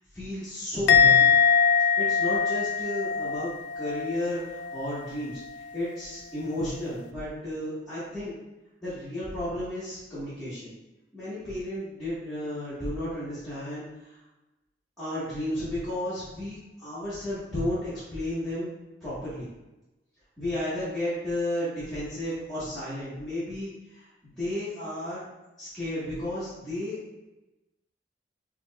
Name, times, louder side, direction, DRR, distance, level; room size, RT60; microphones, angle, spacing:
voice 1, 0.1-1.3 2.0-5.4 5.7-8.3 8.8-10.7 11.1-14.2 15.0-18.7 19.0-19.5 20.4-24.1 24.4-25.2 25.6-27.0, left 1 dB, ahead, -15 dB, 1.4 m, -33 dB
Musical instrument, 0.9-4.3 4.5-5.0, left 6 dB, 70° left, 0.3 m, -22 dB
5.1 x 3.0 x 2.3 m, 1.0 s
head